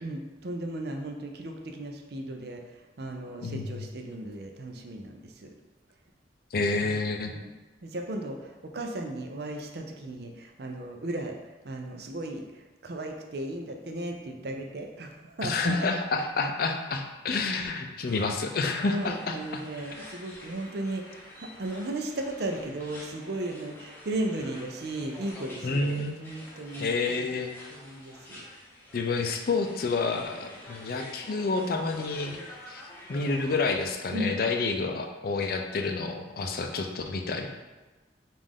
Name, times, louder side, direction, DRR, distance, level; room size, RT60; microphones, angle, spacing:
voice 1, 0.0-2.6 3.0-5.5 6.8-7.0 7.2-7.5 7.8-11.3 11.6-15.8 18.8-27.4 27.7-28.4 34.1-34.4, right 1 dB, 60° right, 3 dB, 0.5 m, -36 dB
voice 2, 3.4-3.8 6.5-7.3 15.4-19.6 25.6-26.1 26.8-27.5 28.9-32.4 32.7-32.8 33.1-37.5, left 3 dB, 50° left, 4 dB, 0.4 m, -29 dB
sound 1, 18.0-33.9, left 1 dB, 10° left, 0.7 m, -48 dB
5.3 x 2.5 x 3.5 m, 1.2 s
head